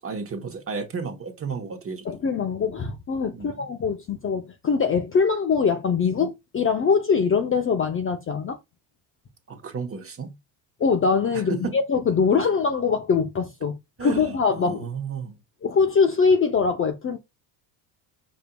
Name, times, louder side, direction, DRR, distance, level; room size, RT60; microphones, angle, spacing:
voice 1, 0.0-2.1 3.3-3.7 9.5-10.3 11.3-11.8 14.0-15.4, right 5 dB, 25° right, 1.0 m, -33 dB
voice 2, 2.1-8.6 10.8-14.9 15.6-17.2, left 5 dB, 25° left, 0.5 m, -23 dB
5.2 x 2.7 x 2.2 m
supercardioid pair, 85°, 49 cm